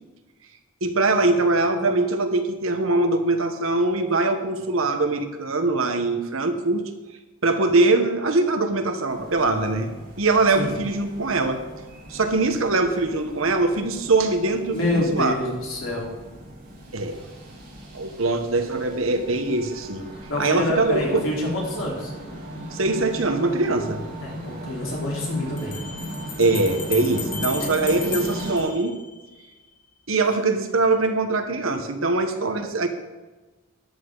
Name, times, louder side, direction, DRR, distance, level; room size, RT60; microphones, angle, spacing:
voice 1, 0.8-6.8 7.4-9.9 10.2-11.6 12.1-15.3 16.9-17.2 17.9-20.1 20.4-21.2 22.7-24.0 26.4-28.9 30.1-32.9, right 3 dB, 70° right, 7 dB, 1.3 m, -22 dB
sound 1, 9.1-28.6, right 1 dB, 45° right, 3.4 m, -38 dB
voice 2, 14.7-16.1 20.1-22.1 24.2-25.8 27.8-27.9, left 1 dB, 70° left, -4 dB, 4.2 m, -27 dB
Bell, 25.6-29.5, left 7 dB, 40° left, 1.3 m, -35 dB
13.5 x 10.5 x 4.0 m, 1.2 s
head